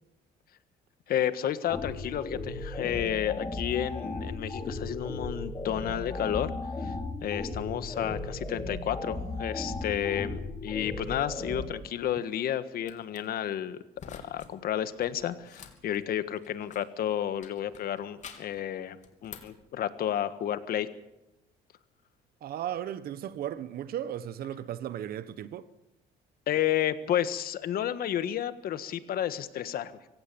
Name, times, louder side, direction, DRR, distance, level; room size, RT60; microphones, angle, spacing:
voice 1, 1.1-6.5 6.8-6.9 7.2-13.8 14.1-20.9 26.5-29.9, left 10 dB, 60° left, 1.6 m, -31 dB
sound 1, 1.7-11.7, left 2 dB, 20° left, 4.3 m, -36 dB
sound 2, 12.8-13.2 14.0-14.5 14.8-17.0 17.4-18.6 19.0-19.6, left 6 dB, 45° left, 3.3 m, -49 dB
voice 2, 22.4-25.7, right 11 dB, 65° right, 1.2 m, -36 dB
24.5 x 17.0 x 7.1 m
cardioid pair, 110°, 17 cm